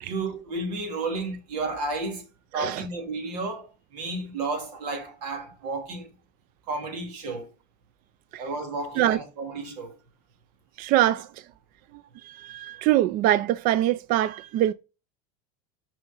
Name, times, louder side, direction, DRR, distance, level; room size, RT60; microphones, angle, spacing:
voice 1, 0.0-2.2 2.5-6.1 6.7-7.5 8.4-9.9, right 3 dB, 90° right, 2.8 m, -32 dB
voice 2, 2.5-2.8 8.3-8.4 9.0-9.2 10.8-11.3 12.2-14.7, right 13 dB, 45° right, 0.4 m, -23 dB
6.4 x 4.9 x 3.8 m
supercardioid pair, 130°, 20 cm